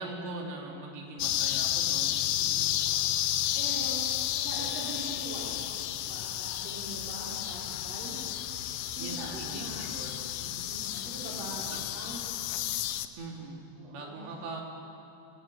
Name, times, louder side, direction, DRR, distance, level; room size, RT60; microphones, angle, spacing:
voice 1, 0.0-2.2 9.0-10.3 11.3-11.8 13.2-14.6, right 2 dB, 70° right, 0 dB, 5.0 m, -41 dB
sound 1, 1.2-13.1, left 12 dB, 85° left, 3.2 m, -32 dB
voice 2, 2.3-2.9 3.6-4.0 4.4-5.7 6.0-8.5 8.9-9.8 10.4-12.2 13.8-14.2, right 2 dB, 50° right, -8 dB, 5.7 m, -42 dB
27.0 x 17.0 x 8.8 m, 2.8 s
omnidirectional pair, 5.4 m